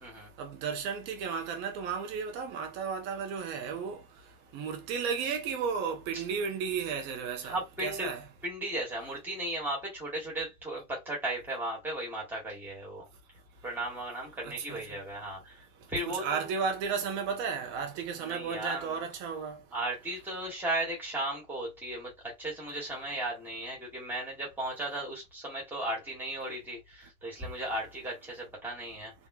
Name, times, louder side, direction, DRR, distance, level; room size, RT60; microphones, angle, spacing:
voice 1, 0.4-4.0 4.5-8.2 14.6-14.8 16.1-19.6, right 6 dB, 25° right, 0.6 m, -34 dB
voice 2, 7.4-8.1 8.4-13.1 13.6-15.6 15.9-16.6 18.1-19.1 19.7-29.1, right 1 dB, 5° right, 1.6 m, -36 dB
3.6 x 3.1 x 2.3 m
supercardioid pair, 160°, 44 cm